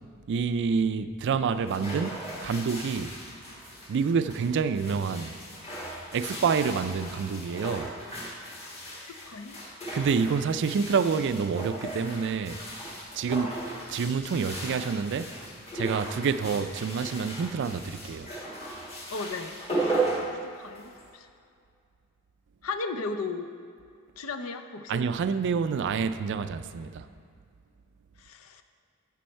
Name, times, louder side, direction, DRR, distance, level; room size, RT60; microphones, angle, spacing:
voice 1, 0.3-3.2 3.9-5.4 6.1-7.9 9.9-12.6 13.1-13.6 13.9-15.3 15.7-18.3 24.9-27.1, right 5 dB, 55° right, 0.4 m, -28 dB
sound 1, 1.5-21.1, right 2 dB, 30° left, 1.5 m, -36 dB
voice 2, 9.0-9.6 19.1-21.3 22.6-23.5 24.2-25.0 28.2-28.6, left 3 dB, 80° left, 0.6 m, -36 dB
11.5 x 5.4 x 4.4 m
head